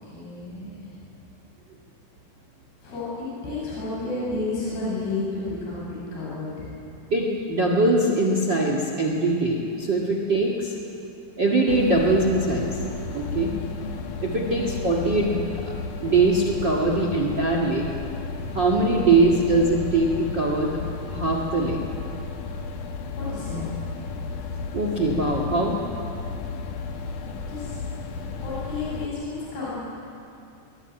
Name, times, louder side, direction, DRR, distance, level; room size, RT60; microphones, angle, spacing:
voice 1, 0.0-1.0 2.8-3.1 3.4-6.7 13.7-13.9 14.5-14.8 23.1-24.0 27.5-27.8 28.4-29.9, left 3 dB, 55° left, -7 dB, 8.4 m, -32 dB
voice 2, 7.1-10.7 11.4-12.8 13.1-13.5 14.2-15.4 16.0-17.9 18.5-20.8 21.1-21.8 24.7-25.8, right 2 dB, 75° right, 1 dB, 1.0 m, -22 dB
sound 1, 11.7-29.1, left 4 dB, 70° left, 1.9 m, -33 dB
23.5 x 21.0 x 9.1 m, 2.7 s
omnidirectional pair, 5.7 m